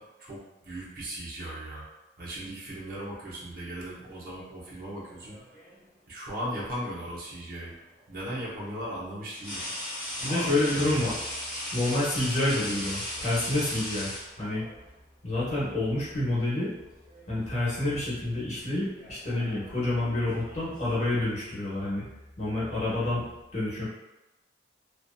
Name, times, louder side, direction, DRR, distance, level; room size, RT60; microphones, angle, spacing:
voice 1, 0.0-1.9 2.2-5.4 6.1-7.8 8.1-9.6 10.3-11.1, right 1 dB, 50° right, -7 dB, 0.8 m, -37 dB
sound 1, 5.0-5.9 7.6-7.8 9.3-14.8 16.0-16.2 16.6-17.3 17.6-18.0 18.8-21.4, left 1 dB, 5° left, 1.2 m, -38 dB
voice 2, 10.2-11.1 11.7-14.1 14.4-14.6 15.2-16.7 17.3-22.0 22.4-23.2 23.5-23.9, left 1 dB, 40° left, -9 dB, 0.9 m, -28 dB
2.6 x 2.4 x 2.2 m, 0.97 s
head